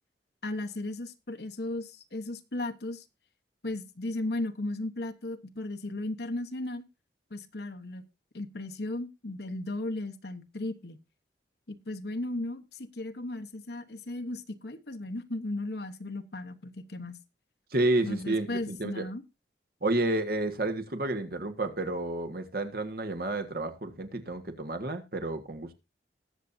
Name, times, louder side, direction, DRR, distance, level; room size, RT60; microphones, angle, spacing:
voice 1, 0.4-3.0 3.6-6.8 7.3-8.0 8.3-11.0 11.7-17.2 18.0-19.2, left 2 dB, 65° left, 1.2 m, -36 dB
voice 2, 17.7-19.1 19.8-25.7, right 2 dB, 55° right, 1.6 m, -30 dB
20.5 x 7.4 x 2.7 m
head